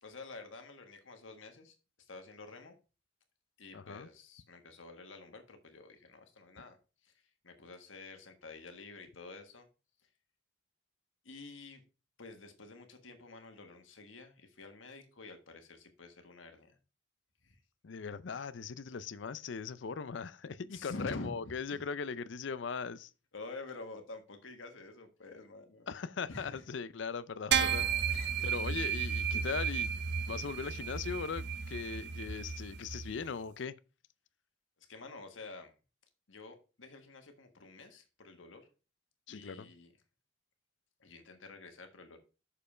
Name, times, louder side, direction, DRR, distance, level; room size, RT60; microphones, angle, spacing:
voice 1, 0.0-2.8 3.6-6.8 7.0-7.1 7.4-9.7 11.2-11.8 12.2-16.8 17.4-17.6 20.7-21.8 23.3-25.9 26.3-26.6 28.1-28.5 34.9-35.7 36.3-38.7 39.3-39.9 41.0-42.2, left 3 dB, 85° left, 1.5 m, -49 dB
voice 2, 3.7-4.1 17.8-23.1 25.9-28.1 28.4-30.0 30.3-33.7 39.3-39.7, left 5 dB, 70° left, 0.5 m, -39 dB
sound 1, 27.5-33.1, right 7 dB, 60° right, 0.7 m, -33 dB
6.6 x 5.4 x 5.0 m
head